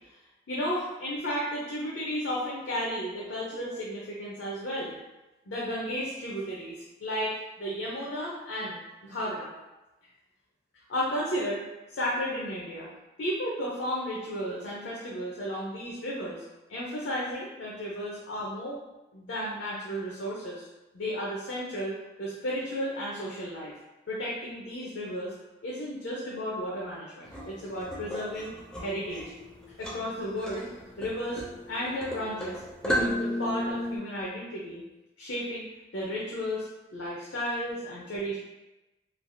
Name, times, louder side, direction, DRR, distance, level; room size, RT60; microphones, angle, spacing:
voice 1, 0.5-4.9 5.5-9.5 10.9-12.9 13.2-16.4 16.7-18.8 19.1-20.7 20.9-23.7 24.1-25.3 25.6-29.3 29.8-30.7 31.0-31.4 31.7-34.8 35.2-38.4, equal, 75° left, -5 dB, 0.6 m, -33 dB
sound 1, 27.2-34.0, equal, 5° left, 0.4 m, -34 dB
3.2 x 2.3 x 2.5 m, 1.0 s
head